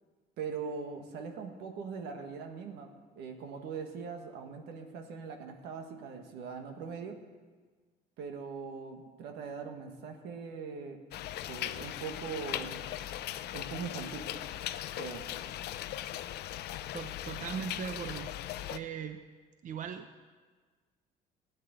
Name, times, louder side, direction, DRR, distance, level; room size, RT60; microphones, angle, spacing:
voice 1, 0.4-7.2 8.2-11.0 11.5-12.9 13.5-14.4 15.0-15.3, right 5 dB, 85° right, 4 dB, 1.7 m, -41 dB
sound 1, 11.1-18.8, left 13 dB, 75° left, 0.6 m, -39 dB
voice 2, 16.9-18.3 18.7-19.2 19.6-20.1, right 8 dB, 50° right, 8 dB, 0.8 m, -39 dB
14.0 x 10.0 x 8.1 m, 1.4 s
cardioid pair, 110°, 17 cm